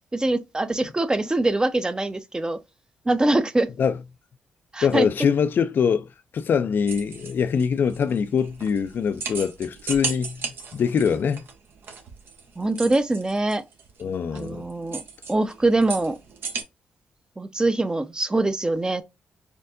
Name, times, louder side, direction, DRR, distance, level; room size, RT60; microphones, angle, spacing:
voice 1, 0.1-2.6 3.1-3.7 4.7-5.1 12.6-13.6 14.3-15.0 15.3-16.2 17.4-19.0, right 2 dB, 20° right, 0.6 m, -23 dB
voice 2, 4.8-11.4 14.0-14.7, left 6 dB, 65° left, 0.4 m, -23 dB
sound 1, 6.9-16.6, right 5 dB, 70° right, 0.9 m, -36 dB
4.4 x 2.6 x 2.5 m
cardioid pair, 60°, 4 cm